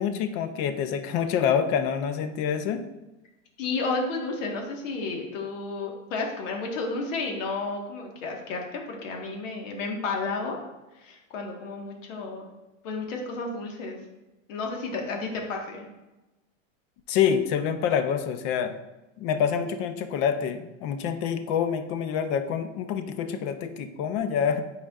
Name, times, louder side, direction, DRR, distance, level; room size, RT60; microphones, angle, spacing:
voice 1, 0.0-2.8 17.1-18.7 19.2-24.6, left 8 dB, 35° left, 9 dB, 0.4 m, -26 dB
voice 2, 3.6-10.6 11.0-12.5 12.8-14.0 14.5-15.8, left 3 dB, 70° left, 1 dB, 1.5 m, -32 dB
8.8 x 4.9 x 2.4 m, 1.0 s
supercardioid pair, 150°, 39 cm